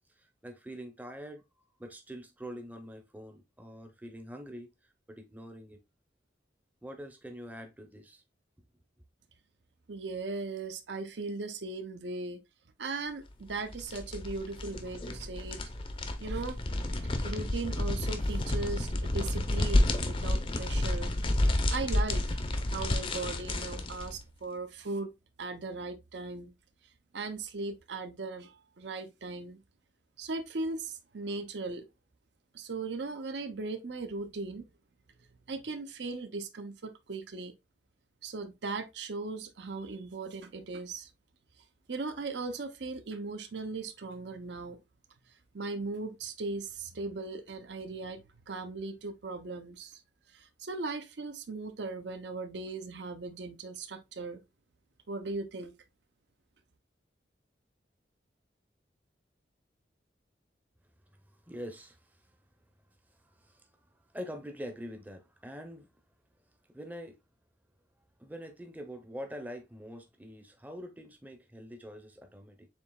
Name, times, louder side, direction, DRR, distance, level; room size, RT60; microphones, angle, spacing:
voice 1, 0.1-1.4 1.8-5.8 6.8-8.2 61.3-62.4 63.1-65.9 66.7-67.2 68.2-72.7, equal, 10° right, 0.6 m, -45 dB
voice 2, 9.9-12.4 12.8-15.6 16.2-16.6 17.2-21.1 21.7-22.3 22.7-25.1 25.4-26.5 27.1-29.6 30.2-31.9 32.5-34.7 35.5-37.5 38.2-41.1 41.9-44.8 45.5-50.0 50.3-54.4 55.1-55.7, right 3 dB, 75° right, 0.7 m, -38 dB
sound 1, 13.5-24.2, left 1 dB, 30° left, 0.5 m, -30 dB
7.1 x 2.8 x 2.2 m
head